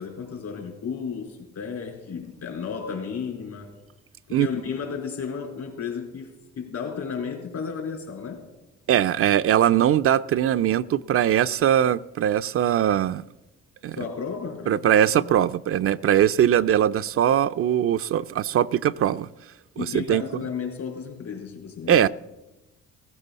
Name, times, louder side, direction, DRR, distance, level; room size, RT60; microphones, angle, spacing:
voice 1, 0.0-3.7 4.3-8.5 13.9-15.3 19.7-22.1, left 6 dB, 65° left, 4.4 m, -33 dB
voice 2, 8.9-13.2 13.8-14.0 14.7-19.3 19.8-20.2 21.9-22.1, right 10 dB, 50° right, 0.4 m, -21 dB
16.0 x 15.5 x 4.1 m
supercardioid pair, 60°, 30 cm